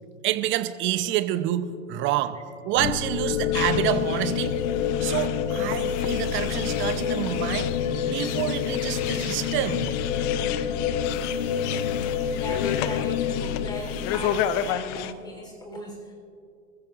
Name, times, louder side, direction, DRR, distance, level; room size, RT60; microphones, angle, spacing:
voice 1, 0.2-2.4 2.6-4.6 5.0-10.0, right 13 dB, 30° right, 11 dB, 0.8 m, -28 dB
sound 1, 2.8-14.7, left 8 dB, 65° left, 1.2 m, -27 dB
sound 2, 3.5-15.1, left 11 dB, 25° left, 0.4 m, -33 dB
voice 2, 12.3-16.1, right 1 dB, 10° left, 2 dB, 3.8 m, -37 dB
25.5 x 14.5 x 2.5 m, 2.4 s
hypercardioid pair, 105°, 43 cm